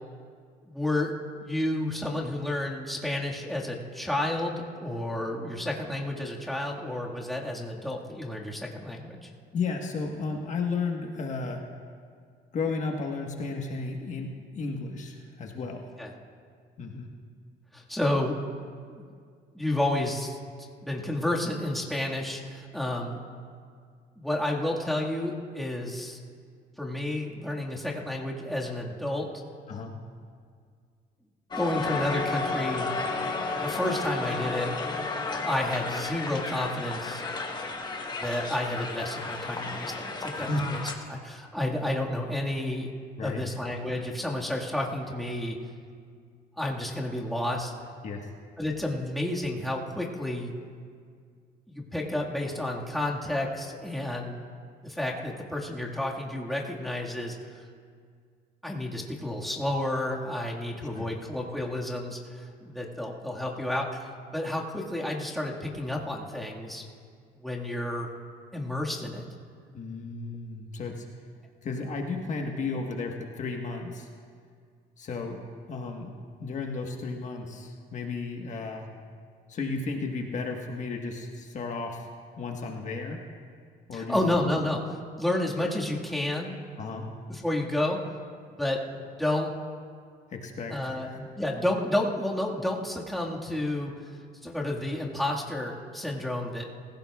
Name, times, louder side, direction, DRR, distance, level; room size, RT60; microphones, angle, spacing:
voice 1, 0.7-1.1 1.4-9.3 16.0-16.1 17.7-18.4 18.9-19.1 19.6-23.2 24.2-26.2 26.8-29.3 31.6-32.9 33.6-34.7 35.5-37.2 38.1-42.9 43.2-45.6 46.6-47.7 48.6-50.5 51.7-54.4 54.8-57.4 58.6-66.8 67.4-68.1 68.5-69.3 83.9-86.6 87.3-88.0 88.6-89.5 90.7-94.2 94.4-96.6, left 1 dB, ahead, -3 dB, 1.8 m, -31 dB
voice 2, 9.5-11.6 12.5-15.8 16.8-17.1 29.7-30.0 40.3-40.7 43.2-43.4 48.0-48.3 60.9-61.1 69.7-71.1 71.6-74.1 75.0-75.4 75.7-76.1 76.4-78.9 79.5-82.1 82.4-83.2 83.9-84.2 86.8-87.1 90.3-91.2, left 4 dB, 45° left, 2 dB, 1.4 m, -33 dB
Crowd, 31.5-41.0, left 3 dB, 25° left, 1.3 m, -32 dB
24.5 x 16.0 x 2.4 m, 2.1 s
cardioid pair, 110°, 17 cm